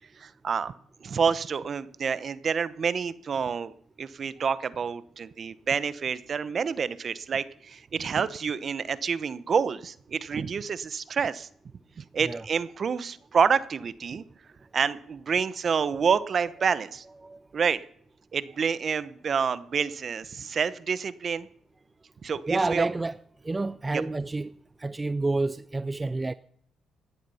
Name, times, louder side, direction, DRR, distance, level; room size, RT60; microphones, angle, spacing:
voice 1, 0.2-0.7 1.0-11.5 12.0-14.2 14.7-17.0 17.5-17.8 18.3-21.5 22.2-22.9 23.9-24.0, right 6 dB, 45° right, 0.9 m, -28 dB
voice 2, 22.5-23.2 23.5-24.5 24.8-26.3, right 2 dB, 20° right, 0.5 m, -28 dB
16.5 x 11.0 x 5.6 m
cardioid pair, 90°, 0 cm